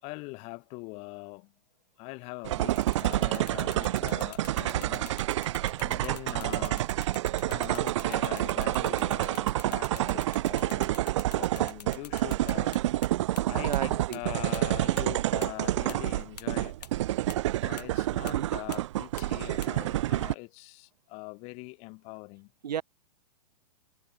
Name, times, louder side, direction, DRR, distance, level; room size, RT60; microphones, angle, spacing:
voice 1, 0.0-1.5 2.0-5.3 5.8-6.9 7.5-11.0 11.3-12.8 13.4-16.8 17.6-22.5, left 28 dB, 30° left, 3.2 m, -42 dB
sound 1, 2.4-20.3, right 15 dB, 45° right, 0.4 m, -28 dB
sound 2, 2.7-13.1 13.4-13.5 13.7-13.8 14.1-14.2 14.5-14.6 15.0-15.1 15.4-15.5 15.9-16.0 16.4-16.5 16.8-16.9 17.3-17.4 17.8-17.9 18.3-18.4 18.7-18.8 19.2-19.3 19.6-19.7, left 9 dB, 80° left, 2.9 m, -45 dB
voice 2, 13.6-14.2 18.2-18.5 22.6-22.8, right 9 dB, 80° right, 2.7 m, -34 dB
hypercardioid pair, 155°, 21 cm